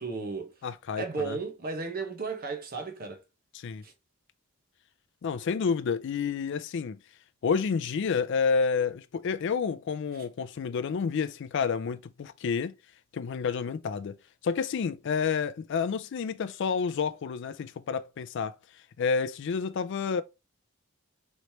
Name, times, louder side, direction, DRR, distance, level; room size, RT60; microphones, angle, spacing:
voice 1, 0.0-0.5 1.0-3.2 3.8-3.9, right 4 dB, 45° right, 0.8 m, -34 dB
voice 2, 0.6-1.4 3.5-3.8 5.2-7.0 7.4-12.7 13.1-14.2 14.4-20.2, left 5 dB, 55° left, 0.3 m, -29 dB
3.2 x 3.0 x 2.8 m
head